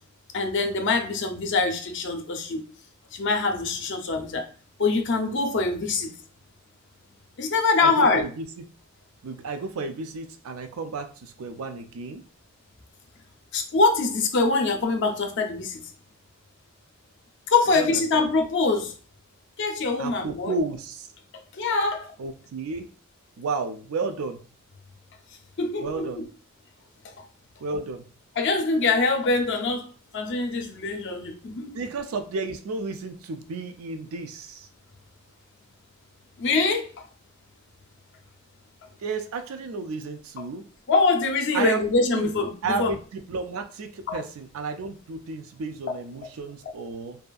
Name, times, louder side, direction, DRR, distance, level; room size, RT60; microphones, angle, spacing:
voice 1, 0.3-2.6 3.1-4.5 4.8-6.1 7.4-8.2 13.5-15.8 17.5-18.9 19.6-20.6 21.6-22.1 25.6-26.3 27.2-27.3 28.4-29.9 30.1-31.9 36.4-37.1 40.9-42.9 44.1-44.2 45.9-46.0, left 3 dB, 60° left, 0.5 m, -24 dB
voice 2, 7.8-8.6 9.2-12.2 17.8-18.3 20.0-21.1 22.2-22.9 23.4-24.4 25.8-26.3 27.6-28.0 31.7-34.7 39.0-40.6 41.5-41.8 42.1-42.3 42.6-47.2, right 3 dB, 80° right, 0.4 m, -32 dB
2.7 x 2.4 x 2.3 m
head